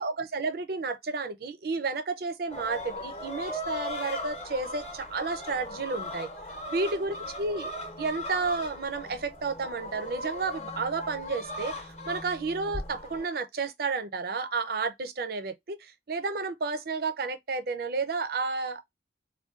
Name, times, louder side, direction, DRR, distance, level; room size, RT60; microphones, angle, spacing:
voice 1, 0.0-6.3 6.7-7.7 8.0-11.7 12.1-15.8 16.1-18.8, right 4 dB, 60° right, 0.5 m, -31 dB
sound 1, 2.5-13.3, left 1 dB, 35° left, 0.8 m, -38 dB
3.6 x 2.2 x 2.4 m
head